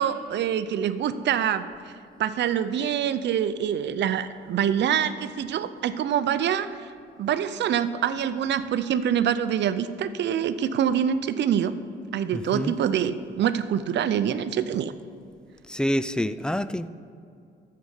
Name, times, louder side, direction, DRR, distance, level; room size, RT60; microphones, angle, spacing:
voice 1, 0.0-1.7 2.2-6.7 7.2-11.8 12.1-14.9, right 9 dB, 60° right, 12 dB, 0.6 m, -25 dB
voice 2, 12.3-12.7 15.7-16.9, equal, 5° left, 14 dB, 0.3 m, -27 dB
14.0 x 4.7 x 5.6 m, 2.5 s
cardioid pair, 90°, 20 cm